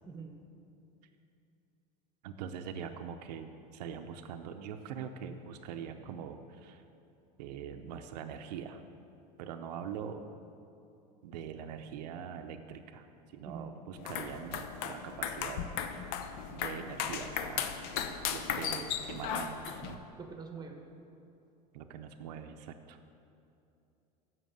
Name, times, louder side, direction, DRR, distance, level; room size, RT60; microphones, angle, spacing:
voice 1, 0.0-0.4 13.5-13.8 20.2-20.9, right 5 dB, 20° right, 4 dB, 1.1 m, -44 dB
voice 2, 2.2-6.8 7.4-8.8 9.4-10.2 11.2-13.1 13.3-15.7 16.5-17.7 18.3-20.0 21.7-23.0, right 8 dB, 85° right, 7 dB, 0.6 m, -43 dB
sound 1, 14.0-20.0, left 8 dB, 65° left, 0.7 m, -36 dB
7.2 x 5.9 x 7.7 m, 2.7 s
supercardioid pair, 115°, 20 cm